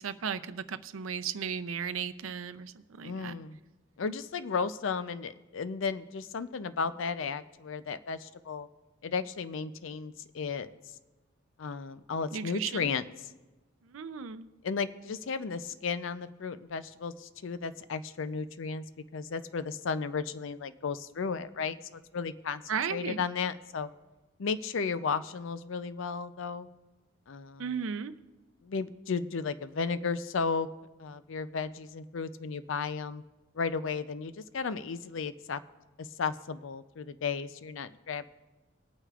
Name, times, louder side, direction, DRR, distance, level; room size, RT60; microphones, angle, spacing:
voice 1, 0.0-3.4 12.3-12.9 13.9-14.5 22.7-23.2 27.6-28.1, right 7 dB, 90° right, 12 dB, 0.5 m, -35 dB
voice 2, 3.0-3.6 4.0-8.7 9.0-10.7 11.6-13.3 14.6-18.8 19.1-22.6 22.9-23.9 24.4-26.7 27.3-27.8 28.6-30.7 31.0-33.2 33.5-35.6 36.0-38.2, left 5 dB, 70° left, 13 dB, 0.5 m, -34 dB
21.5 x 9.0 x 2.4 m, 1.1 s
head